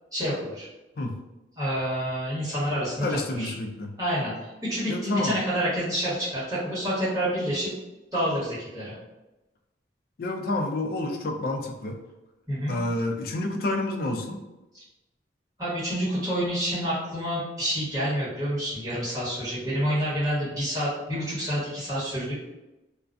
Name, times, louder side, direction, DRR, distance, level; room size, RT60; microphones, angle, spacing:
voice 1, 0.1-0.7 1.6-3.5 4.0-7.7 8.1-8.9 12.5-12.7 15.6-22.3, equal, 20° right, -11 dB, 1.2 m, -28 dB
voice 2, 3.0-3.9 4.9-5.3 10.2-12.0 12.7-14.4, left 2 dB, 55° left, 4 dB, 0.3 m, -29 dB
2.4 x 2.2 x 2.4 m, 1.0 s
head